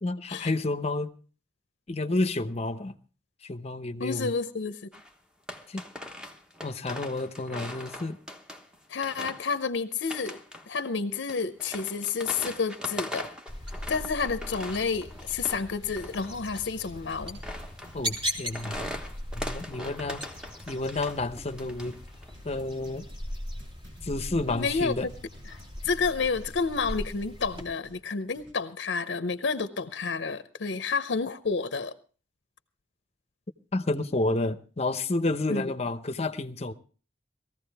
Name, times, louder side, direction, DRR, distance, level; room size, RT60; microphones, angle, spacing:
voice 1, 0.0-1.1 1.9-2.9 3.4-4.3 5.7-5.8 6.6-8.2 17.9-18.9 19.3-20.2 20.7-21.9 22.4-23.1 24.0-25.1 33.7-36.7, left 2 dB, 35° left, 0.8 m, -30 dB
voice 2, 4.0-4.8 8.9-13.3 13.9-17.4 24.5-25.1 25.5-31.9 35.5-35.6, left 5 dB, 75° left, 0.7 m, -30 dB
sound 1, 4.9-5.1 5.5-8.8 9.0-9.5 10.1-10.7 11.3-15.7 16.0-21.2 21.5-22.3, left 1 dB, 5° right, 1.2 m, -41 dB
sound 2, 13.5-27.6, equal, 30° right, 3.3 m, -39 dB
sound 3, 15.8-28.5, right 1 dB, 85° right, 4.5 m, -55 dB
19.5 x 15.0 x 3.4 m
head